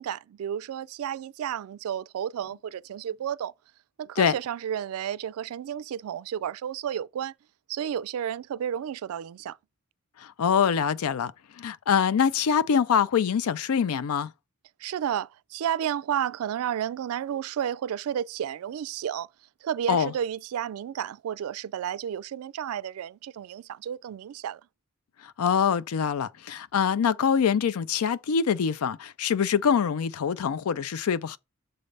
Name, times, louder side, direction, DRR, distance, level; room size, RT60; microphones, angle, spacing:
voice 1, 0.0-3.5 4.0-7.3 7.7-9.6 14.8-19.3 19.6-24.6, right 9 dB, 80° right, 0.3 m, -32 dB
voice 2, 10.4-11.3 11.6-14.3 19.9-20.1 25.4-31.4, left 7 dB, 90° left, 0.4 m, -24 dB
6.6 x 3.3 x 5.2 m
head